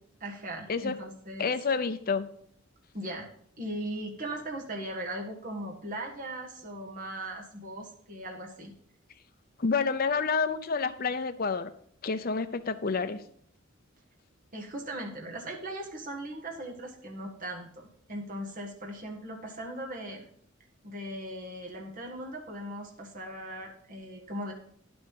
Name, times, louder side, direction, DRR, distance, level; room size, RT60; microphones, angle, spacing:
voice 1, 0.2-1.5 2.9-3.3 3.6-8.7 14.5-20.2 20.8-24.5, right 1 dB, 40° right, 1 dB, 1.6 m, -39 dB
voice 2, 1.4-2.3 9.6-11.7 12.0-13.2, left 5 dB, 45° left, 9 dB, 0.7 m, -29 dB
10.5 x 6.2 x 5.4 m, 0.63 s
head